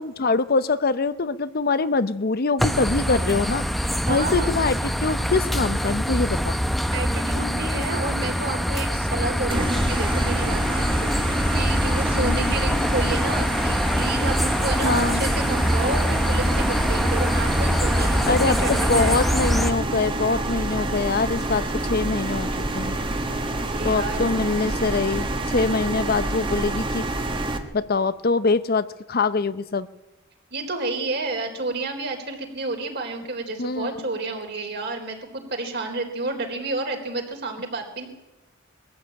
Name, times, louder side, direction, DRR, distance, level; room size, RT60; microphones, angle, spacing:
voice 1, 0.0-3.6 4.1-6.6 12.2-12.5 14.8-15.2 18.3-22.5 22.7-23.0 23.8-27.0 27.7-29.9 33.6-34.0, left 3 dB, 50° left, 14 dB, 0.7 m, -24 dB
sound 1, 2.6-19.7, equal, ahead, 0.8 m, -24 dB
voice 2, 4.1-4.5 6.9-19.2 23.6-24.4 30.5-38.1, right 2 dB, 55° right, 3 dB, 3.9 m, -30 dB
sound 2, 9.5-27.6, right 1 dB, 25° right, 1.6 m, -28 dB
21.0 x 14.0 x 8.7 m, 1.0 s
head